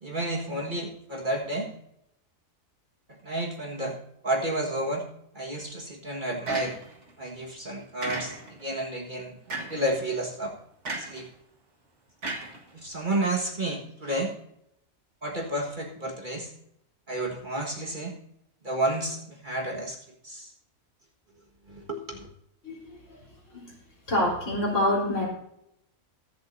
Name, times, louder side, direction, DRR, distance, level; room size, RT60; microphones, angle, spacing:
voice 1, 0.0-1.7 3.1-4.0 4.2-5.1 5.3-6.8 7.2-10.6 10.9-11.3 12.7-14.3 15.2-16.5 17.1-18.2 18.6-20.0 20.2-20.5 21.7-22.3, right 1 dB, 35° right, -1 dB, 1.8 m, -31 dB
sound 1, 6.5-7.1 8.0-8.7 9.5-9.9 10.8-11.3 12.2-13.1, right 2 dB, 55° right, 2.0 m, -35 dB
voice 2, 22.6-23.2 23.5-23.7 24.1-25.3, left 1 dB, 60° left, -4 dB, 4.2 m, -27 dB
23.0 x 7.8 x 2.7 m, 0.78 s
omnidirectional pair, 1.4 m